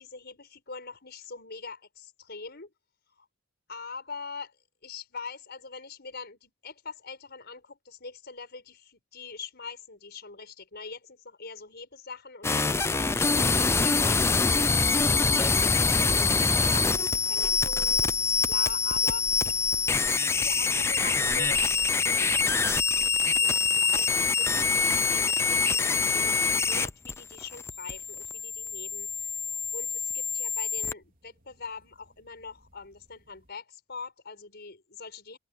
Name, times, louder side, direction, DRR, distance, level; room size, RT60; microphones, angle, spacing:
voice 1, 0.0-2.7 3.2-3.3 3.7-4.6 4.8-14.4 15.1-19.7 20.0-22.6 22.9-35.4, left 4 dB, 50° left, 5.7 m, -43 dB
sound 1, 12.4-30.9, left 4 dB, 10° left, 0.4 m, -25 dB
sound 2, 17.4-33.5, equal, 40° right, 3.6 m, -51 dB
head